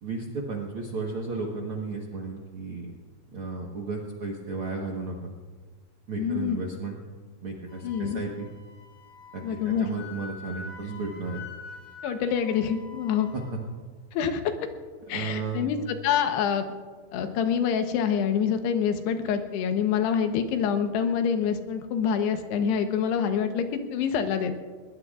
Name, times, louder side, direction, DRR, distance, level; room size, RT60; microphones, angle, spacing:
voice 1, 0.0-2.9 3.3-5.3 6.1-7.0 7.4-8.5 9.3-11.4 13.3-13.4 15.1-15.7, right 3 dB, 80° right, -1 dB, 1.2 m, -34 dB
voice 2, 6.2-6.6 7.8-8.2 9.4-9.9 12.0-13.3 14.1-14.5 15.1-15.8 16.0-16.6 17.1-24.6, left 7 dB, 85° left, 7 dB, 3.1 m, -26 dB
Wind instrument woodwind instrument, 7.7-13.5, left 4 dB, 65° left, 4.2 m, -45 dB
20.5 x 20.0 x 2.4 m, 1.4 s
omnidirectional pair, 4.7 m